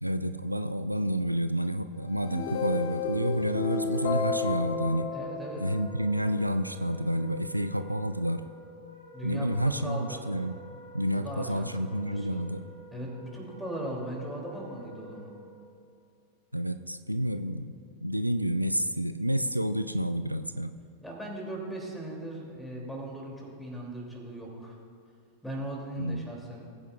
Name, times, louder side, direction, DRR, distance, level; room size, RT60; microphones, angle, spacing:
voice 1, 0.0-5.1 5.6-8.4 9.2-10.6 10.9-12.6 16.5-17.7 18.0-20.7 26.0-26.2, equal, 90° right, 10 dB, 0.3 m, -29 dB
sound 1, 2.1-6.4, left 5 dB, 50° left, 0.8 m, -32 dB
voice 2, 5.1-5.6 9.1-10.2 11.1-12.4 12.9-15.3 21.0-24.8 25.4-26.7, right 1 dB, 5° left, -2 dB, 2.7 m, -38 dB
Wind instrument woodwind instrument, 5.5-15.6, right 1 dB, 85° left, 2.1 m, -49 dB
20.0 x 9.2 x 2.4 m, 2.3 s
figure-of-eight pair, 90°, 0 cm